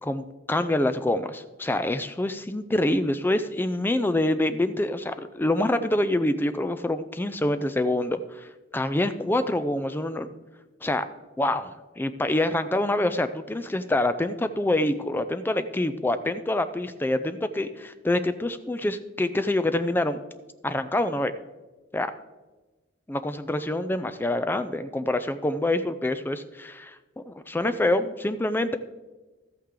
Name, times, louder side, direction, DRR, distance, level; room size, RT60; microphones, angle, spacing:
voice 1, 0.0-10.3 10.8-11.0 11.4-20.2 20.6-21.3 21.9-22.1 23.1-28.8, left 1 dB, 10° left, 11 dB, 0.3 m, -26 dB
13.0 x 8.6 x 3.7 m, 1.2 s
head